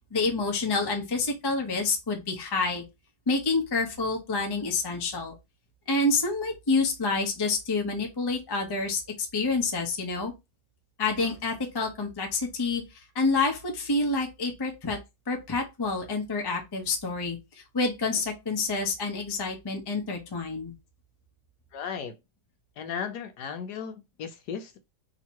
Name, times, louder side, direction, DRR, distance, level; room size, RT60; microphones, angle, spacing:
voice 1, 0.1-2.8 3.3-5.3 5.9-10.3 11.0-15.0 15.3-20.7, left 3 dB, 25° left, 0.5 m, -28 dB
voice 2, 21.7-22.2 22.8-24.8, left 7 dB, 75° left, 1.2 m, -36 dB
3.0 x 2.9 x 4.4 m
omnidirectional pair, 1.9 m